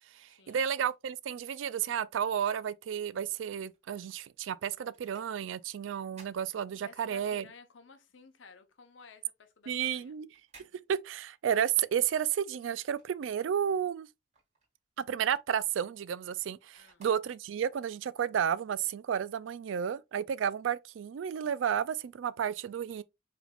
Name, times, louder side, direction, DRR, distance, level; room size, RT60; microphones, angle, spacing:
voice 1, 0.1-7.4 9.7-10.3 10.9-14.1 15.0-23.0, right 8 dB, 85° right, 0.3 m, -32 dB
sound 1, 3.7-7.3 7.7-13.7 14.0-17.8 18.3-18.4, right 4 dB, 40° right, 1.8 m, -63 dB
voice 2, 6.8-10.1 16.8-17.1, left 4 dB, 80° left, 0.8 m, -54 dB
5.0 x 3.3 x 2.4 m
head